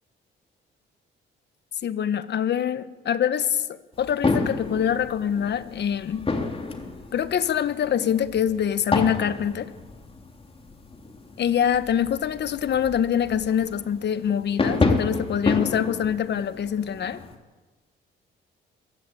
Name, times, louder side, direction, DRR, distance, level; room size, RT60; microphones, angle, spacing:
voice 1, 1.8-3.7 4.0-6.3 7.1-9.7 11.4-17.2, left 9 dB, 60° left, 13 dB, 1.3 m, -24 dB
sound 1, 3.9-17.3, left 3 dB, 30° left, 2.9 m, -30 dB
22.5 x 15.0 x 8.6 m, 1.3 s
cardioid pair, 90°, 20 cm